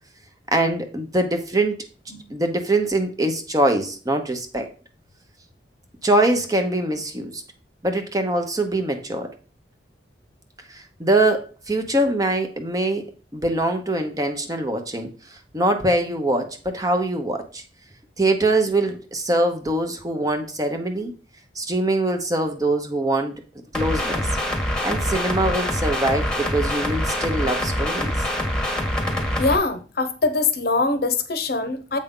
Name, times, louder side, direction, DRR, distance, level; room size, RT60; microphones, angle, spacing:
voice 1, 0.5-1.8 2.3-4.7 6.0-7.4 7.8-9.3 10.7-13.1 13.3-17.6 18.2-21.1 21.6-23.4 23.7-24.3 24.8-28.1, right 1 dB, 20° right, 6 dB, 0.8 m, -23 dB
sound 1, 23.7-29.6, left 1 dB, 5° left, 1.2 m, -25 dB
voice 2, 29.4-32.0, left 3 dB, 55° left, 9 dB, 0.8 m, -23 dB
7.9 x 5.2 x 3.7 m, 0.36 s
head